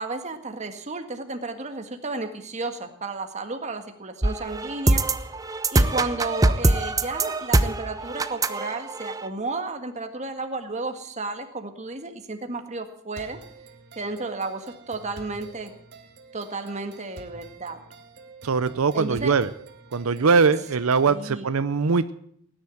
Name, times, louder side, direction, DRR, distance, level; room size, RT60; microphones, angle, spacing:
voice 1, 0.0-5.0 5.7-13.4 13.9-15.7 16.3-17.8 18.9-19.3 21.1-21.4, right 3 dB, 35° right, 6 dB, 1.7 m, -32 dB
sound 1, 4.2-9.3, right 2 dB, 15° right, 0.7 m, -23 dB
sound 2, 13.1-21.1, right 3 dB, 50° right, 1.9 m, -47 dB
voice 2, 18.4-19.5 19.9-22.1, right 5 dB, 90° right, 13 dB, 0.6 m, -21 dB
17.5 x 10.0 x 7.8 m, 0.66 s
head